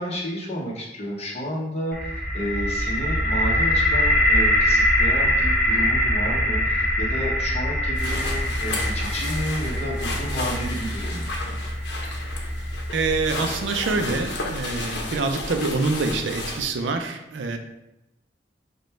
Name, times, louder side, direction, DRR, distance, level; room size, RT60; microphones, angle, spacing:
voice 1, 0.0-11.4, equal, 35° left, -2 dB, 1.0 m, -31 dB
sound 1, 1.9-13.8, equal, 5° left, 1.0 m, -23 dB
sound 2, 7.9-16.6, left 2 dB, 70° left, 0.8 m, -32 dB
voice 2, 12.9-17.6, right 3 dB, 85° right, 6 dB, 0.5 m, -25 dB
5.1 x 2.2 x 4.3 m, 0.91 s
head